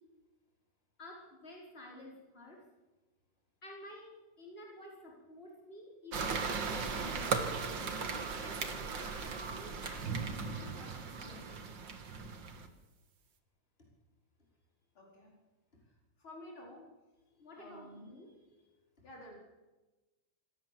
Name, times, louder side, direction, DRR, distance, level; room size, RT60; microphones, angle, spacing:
voice 1, 1.0-2.6 3.6-8.0 8.4-11.7 15.7-15.8 17.3-18.7, left 1 dB, 25° left, -2 dB, 5.3 m, -52 dB
sound 1, 6.1-12.7, right 5 dB, 65° right, 2.5 m, -37 dB
voice 2, 15.0-15.3 15.8-16.9 17.6-18.1 19.0-19.3, left 1 dB, 85° left, -1 dB, 5.4 m, -52 dB
26.5 x 14.0 x 7.7 m, 1.1 s
omnidirectional pair, 2.2 m